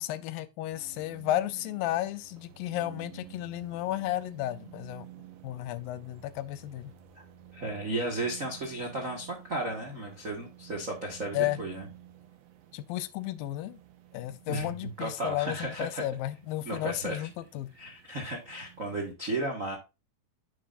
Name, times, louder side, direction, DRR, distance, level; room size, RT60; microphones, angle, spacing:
voice 1, 0.0-5.1 5.4-6.9 11.3-11.6 12.7-13.8 14.1-17.7, left 14 dB, 90° left, 2.4 m, -33 dB
sound 1, 0.7-19.1, right 11 dB, 85° right, 2.9 m, -52 dB
voice 2, 7.5-11.9 14.5-16.0 16.6-17.3 17.8-19.8, right 2 dB, 55° right, 0.8 m, -34 dB
10.0 x 6.3 x 2.5 m
omnidirectional pair, 4.1 m